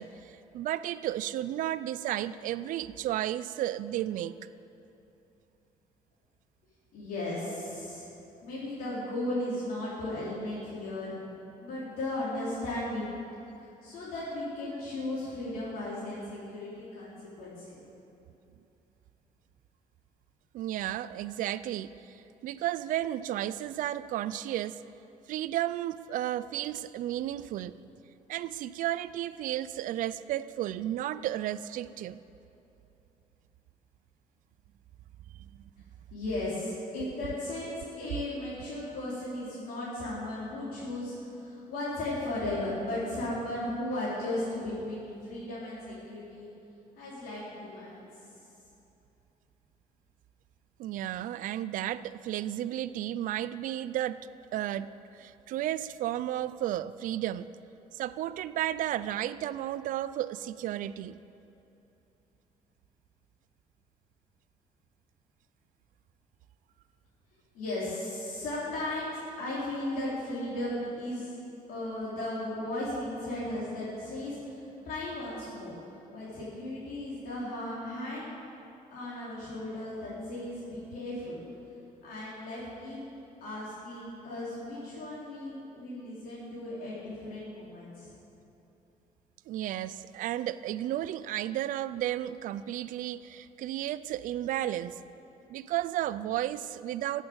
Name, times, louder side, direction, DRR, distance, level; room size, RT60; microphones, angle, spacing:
voice 1, 0.0-4.4 20.5-24.8 25.3-27.7 28.3-32.2 50.8-54.2 54.5-54.9 55.1-57.5 57.9-61.2 89.5-95.0 95.5-97.2, right 13 dB, 70° right, 15 dB, 0.4 m, -33 dB
voice 2, 6.9-8.1 8.4-11.3 11.6-13.1 13.6-17.8 36.1-41.1 41.4-46.5 47.0-48.1 67.5-71.3 71.7-75.8 76.1-78.3 78.9-81.4 82.0-83.1 83.4-88.1, left 1 dB, 85° left, -8 dB, 3.9 m, -36 dB
15.0 x 8.2 x 8.8 m, 2.9 s
cardioid pair, 160°, 14 cm